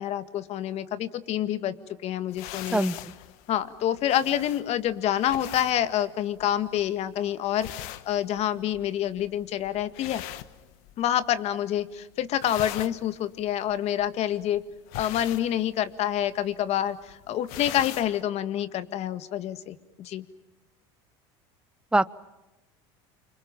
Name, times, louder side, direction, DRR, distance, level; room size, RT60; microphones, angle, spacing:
voice 1, 0.0-1.7 2.0-2.9 3.5-10.2 11.0-14.6 14.9-20.3, left 11 dB, 50° left, 12 dB, 1.9 m, -27 dB
sound 1, 2.3-11.3 11.6-12.0 12.2-18.2, left 14 dB, 70° left, 1.3 m, -42 dB
voice 2, 2.7-3.1 21.9-22.1, right 2 dB, 5° right, 18 dB, 0.8 m, -24 dB
28.5 x 26.0 x 7.4 m, 1.0 s
supercardioid pair, 100°, 14 cm